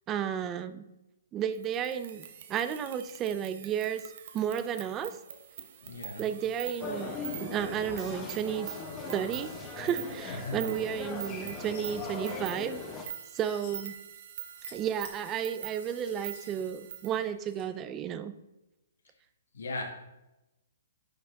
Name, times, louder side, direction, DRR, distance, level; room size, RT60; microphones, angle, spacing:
voice 1, 0.1-0.8 1.3-4.0 4.3-5.2 6.2-8.7 9.1-13.9 14.7-18.3, right 9 dB, 20° right, 12 dB, 0.4 m, -33 dB
sound 1, 1.5-17.2, right 10 dB, 45° right, 0.8 m, -45 dB
voice 2, 5.8-6.3 10.2-10.6 19.5-19.8, left 2 dB, 90° left, 2 dB, 1.9 m, -37 dB
sound 2, 6.8-13.0, left 4 dB, 15° left, 0.9 m, -40 dB
sound 3, 11.2-12.1 12.8-13.9 14.4-14.7 15.0-17.7, left 6 dB, 45° left, 2.0 m, -54 dB
10.5 x 4.8 x 3.7 m, 0.96 s
hypercardioid pair, 160°, 0 cm